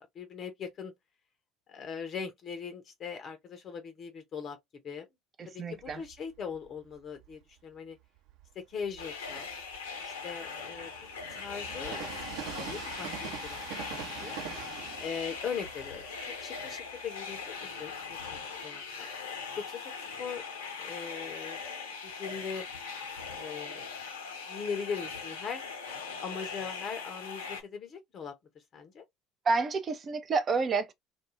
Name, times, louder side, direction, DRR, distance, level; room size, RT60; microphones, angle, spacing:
voice 1, 0.1-0.9 1.7-4.6 4.8-5.0 5.7-8.0 8.6-9.5 10.0-10.9 11.3-12.0 12.3-13.6 13.9-14.4 15.0-18.4 18.6-19.1 19.6-20.4 20.8-21.6 22.0-22.6 23.3-23.9 24.5-25.7 26.2-28.3 28.7-29.0, left 6 dB, 45° left, 0.6 m, -40 dB
voice 2, 5.4-6.0 29.5-30.9, right 4 dB, 35° right, 0.5 m, -29 dB
Train, 5.8-7.4 8.0-18.6, right 9 dB, 65° right, 0.8 m, -45 dB
sound 1, 9.0-27.6, left 5 dB, 80° left, 0.6 m, -40 dB
2.3 x 2.2 x 3.0 m
figure-of-eight pair, 60°, 0 cm